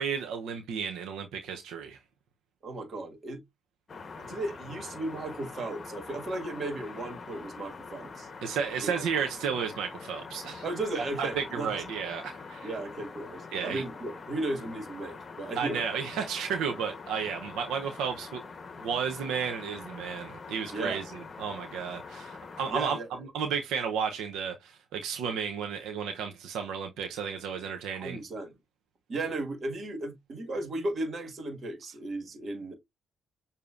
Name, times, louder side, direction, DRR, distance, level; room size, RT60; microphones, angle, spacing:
voice 1, 0.0-2.0 8.4-10.6 11.2-12.7 13.5-13.8 15.6-18.4 18.8-28.2, right 7 dB, 90° right, 0.6 m, -33 dB
voice 2, 2.6-3.4 4.2-8.3 8.8-9.0 10.6-11.8 12.6-15.8 20.7-21.0 22.7-23.1 28.0-28.5 29.1-32.7, right 2 dB, 45° right, 1.7 m, -35 dB
sound 1, 3.9-22.7, left 4 dB, 40° left, 1.0 m, -44 dB
6.8 x 2.7 x 2.4 m
cardioid pair, 90°, 0 cm